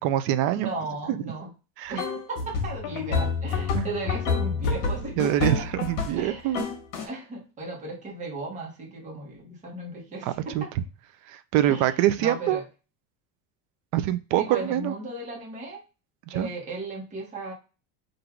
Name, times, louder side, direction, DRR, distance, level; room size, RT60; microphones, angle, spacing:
voice 1, 0.0-0.7 1.1-1.2 1.8-2.0 3.7-3.9 5.2-6.7 10.2-10.6 11.3-12.6 13.9-14.9 16.3-16.5, right 12 dB, 50° right, 12 dB, 0.5 m, -25 dB
voice 2, 0.5-1.5 1.9-5.7 6.1-10.7 11.7-12.7 14.4-15.8 16.3-17.5, right 2 dB, 20° right, -1 dB, 1.1 m, -36 dB
sound 1, 2.0-6.3 6.5-7.1, left 5 dB, 65° left, 1.6 m, -28 dB
3.9 x 2.6 x 4.5 m, 0.31 s
cardioid pair, 170°, 38 cm